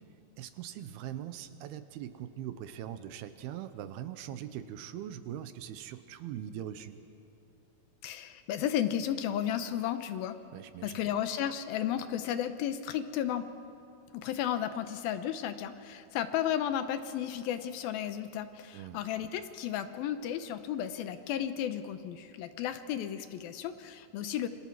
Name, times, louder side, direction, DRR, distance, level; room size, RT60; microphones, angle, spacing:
voice 1, 0.4-7.0 10.5-11.0 18.7-19.0, right 11 dB, 85° right, 11 dB, 2.7 m, -41 dB
voice 2, 8.0-10.4 10.8-13.5 14.1-24.5, left 10 dB, 75° left, 10 dB, 2.5 m, -33 dB
28.0 x 25.5 x 4.7 m, 2.8 s
omnidirectional pair, 4.6 m